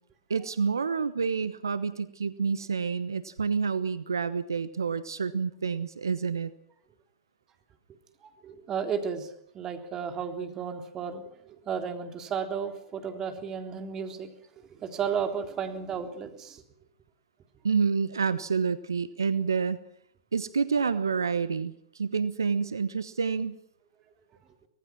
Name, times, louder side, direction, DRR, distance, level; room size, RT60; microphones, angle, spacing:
voice 1, 0.3-6.5 17.6-19.8 20.3-23.6, right 5 dB, 85° right, 14 dB, 1.1 m, -28 dB
voice 2, 8.2-14.3 14.7-16.6, right 7 dB, 25° right, 6 dB, 3.6 m, -33 dB
25.0 x 19.0 x 6.2 m, 0.71 s
hypercardioid pair, 110°, 2 cm